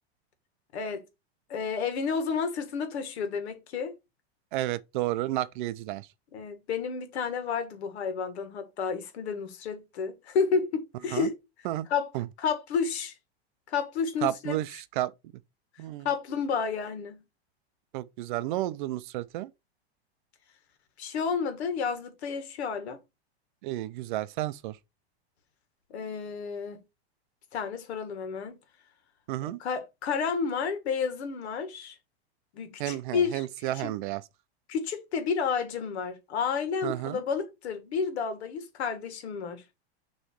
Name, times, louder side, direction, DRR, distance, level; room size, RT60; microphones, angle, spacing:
voice 1, 0.7-1.0 1.5-3.9 6.3-11.3 11.9-12.1 12.4-13.1 13.7-14.6 16.0-17.2 21.0-23.0 25.9-26.8 27.5-28.6 29.4-32.0 32.5-33.4 33.8-33.9 34.7-39.6, left 6 dB, 80° left, 1.9 m, -31 dB
voice 2, 4.5-6.1 11.1-11.3 11.6-11.9 12.1-12.3 14.2-15.1 15.8-16.1 17.9-19.5 23.6-24.8 29.3-29.6 32.8-34.2 36.8-37.2, right 15 dB, 50° right, 0.5 m, -31 dB
6.5 x 3.2 x 4.6 m
supercardioid pair, 155°, 33 cm